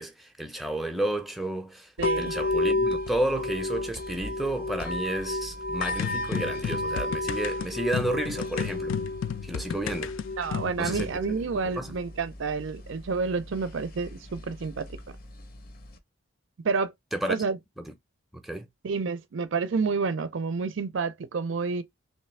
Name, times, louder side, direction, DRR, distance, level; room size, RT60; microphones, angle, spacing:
voice 1, 0.0-1.9 2.2-9.0 9.4-10.1 10.8-11.4 11.6-12.0 17.1-17.4 17.8-17.9 18.3-18.7, right 1 dB, ahead, 0.6 m, -31 dB
sound 1, 2.0-16.0, left 2 dB, 45° left, 0.7 m, -33 dB
voice 2, 2.0-2.3 10.4-14.9 16.6-16.9 17.3-17.6 18.8-21.8, right 4 dB, 70° right, 0.5 m, -29 dB
sound 2, 6.0-11.1, left 7 dB, 75° left, 0.3 m, -33 dB
3.3 x 3.1 x 3.2 m
head